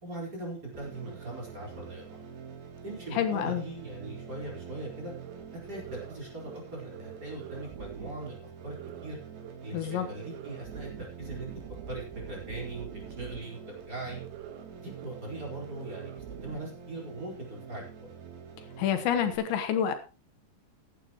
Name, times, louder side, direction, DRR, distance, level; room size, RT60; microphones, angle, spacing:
voice 1, 0.0-2.2 2.8-5.1 5.7-8.4 8.6-9.2 9.6-11.5 11.9-14.2 14.8-18.1, right 2 dB, 20° right, -2 dB, 4.7 m, -40 dB
sound 1, 0.7-19.4, right 7 dB, 50° right, 2.4 m, -46 dB
voice 2, 3.1-3.6 9.7-10.1 18.8-19.9, left 9 dB, 75° left, 8 dB, 3.5 m, -28 dB
sound 2, 5.2-5.3 5.7-6.2 6.4-6.6 6.9-8.3 8.6-9.1 9.4-9.5 9.8-13.4 13.7-13.8 14.1-14.7 14.9-15.1 15.3-16.6, right 9 dB, 75° right, 3.5 m, -45 dB
15.0 x 11.5 x 3.1 m, 0.34 s
omnidirectional pair, 5.3 m